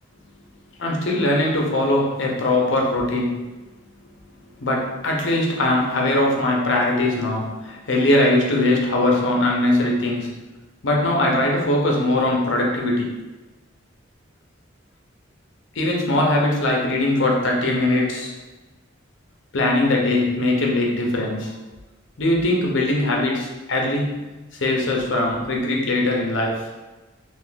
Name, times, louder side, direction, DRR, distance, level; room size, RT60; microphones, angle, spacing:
voice 1, 0.8-3.4 4.6-10.3 10.8-13.1 15.8-18.3 19.5-21.5 22.2-24.2 24.6-26.6, left 1 dB, 70° left, -1 dB, 0.7 m, -21 dB
2.6 x 2.5 x 3.7 m, 1.1 s
head